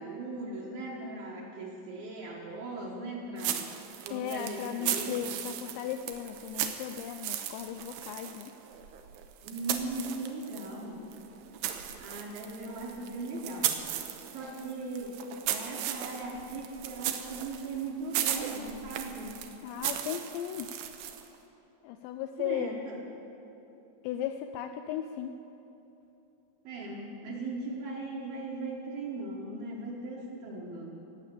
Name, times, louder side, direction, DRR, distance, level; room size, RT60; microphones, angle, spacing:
voice 1, 0.0-3.6 4.0-5.3 9.4-11.1 12.0-13.9 14.3-19.4 22.4-23.0 26.6-31.0, right 2 dB, 65° right, -5 dB, 2.8 m, -38 dB
sound 1, 3.4-10.8 11.1-21.4, right 10 dB, 80° right, 2.5 m, -37 dB
voice 2, 4.1-8.5 19.6-20.7 21.8-22.7 24.0-25.3, left 10 dB, 90° left, 7 dB, 2.5 m, -36 dB
18.5 x 8.3 x 7.6 m, 3.0 s
omnidirectional pair, 5.5 m